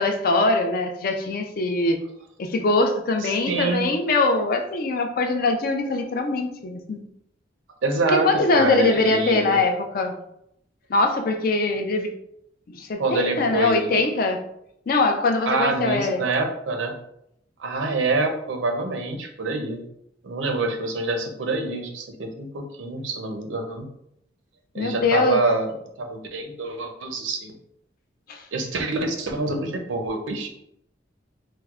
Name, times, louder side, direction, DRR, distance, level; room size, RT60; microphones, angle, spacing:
voice 1, 0.0-2.0 2.4-7.0 8.1-10.2 10.9-12.1 12.7-14.4 14.9-16.2 24.8-25.4 28.3-28.4, left 2 dB, 50° left, 5 dB, 0.4 m, -22 dB
voice 2, 3.2-3.9 7.8-8.3 8.5-9.6 13.0-13.9 15.5-17.0 17.6-19.8 20.2-23.9 24.7-25.7 26.0-27.5 28.5-30.5, right 3 dB, 85° right, 4 dB, 0.6 m, -26 dB
4.5 x 2.0 x 2.3 m, 0.75 s
head